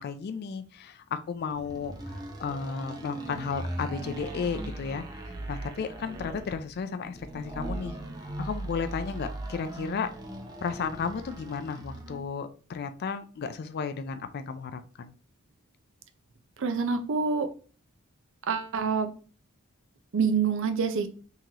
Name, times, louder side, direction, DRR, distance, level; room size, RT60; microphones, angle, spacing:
voice 1, 0.0-1.9 2.4-8.0 8.4-10.1 10.6-15.1, left 5 dB, 50° left, 10 dB, 0.3 m, -34 dB
sound 1, 1.5-12.3, right 1 dB, 20° right, 0.6 m, -39 dB
voice 2, 16.6-17.5 18.5-19.1 20.1-21.1, right 5 dB, 60° right, 9 dB, 0.5 m, -26 dB
3.7 x 3.0 x 2.7 m, 0.38 s
head